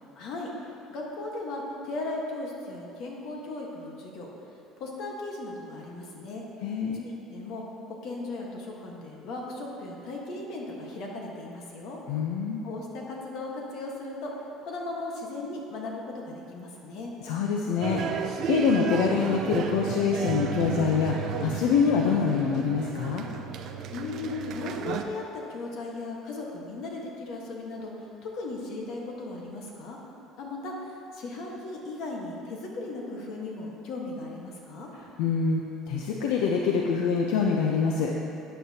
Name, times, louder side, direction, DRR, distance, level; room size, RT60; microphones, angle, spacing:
voice 1, 0.2-0.5 0.9-4.3 4.8-6.4 7.0-7.6 7.9-12.0 12.6-14.3 14.6-17.1 23.9-30.0 30.4-34.9, left 2 dB, 50° left, -1 dB, 1.3 m, -37 dB
voice 2, 6.6-7.1 12.1-12.7 17.2-18.0 18.5-23.3 35.2-35.6 35.9-38.1, left 6 dB, 80° left, 0 dB, 0.7 m, -25 dB
sound 1, 17.8-25.0, right 7 dB, 45° right, 0.5 m, -33 dB
12.5 x 9.3 x 2.9 m, 2.7 s
cardioid pair, 175°, 0 cm